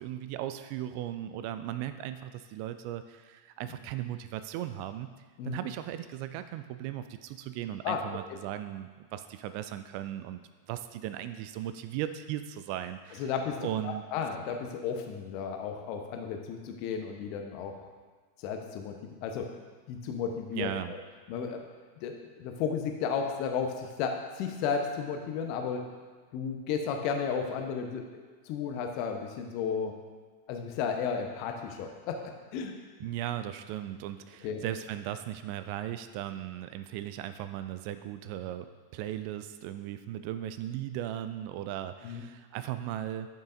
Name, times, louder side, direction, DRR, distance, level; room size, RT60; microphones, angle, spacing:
voice 1, 0.0-5.1 5.5-10.4 10.7-13.3 13.6-14.0 20.5-20.9 33.0-38.7 38.9-43.3, right 12 dB, 45° right, 11 dB, 0.3 m, -37 dB
voice 2, 13.2-17.8 18.4-19.5 19.9-21.0 21.3-21.7 22.0-25.9 26.3-29.9 30.5-32.7 34.4-34.6 42.0-42.2, left 6 dB, 45° left, 4 dB, 0.8 m, -33 dB
10.5 x 5.6 x 2.6 m, 1.5 s
figure-of-eight pair, 90°, 0 cm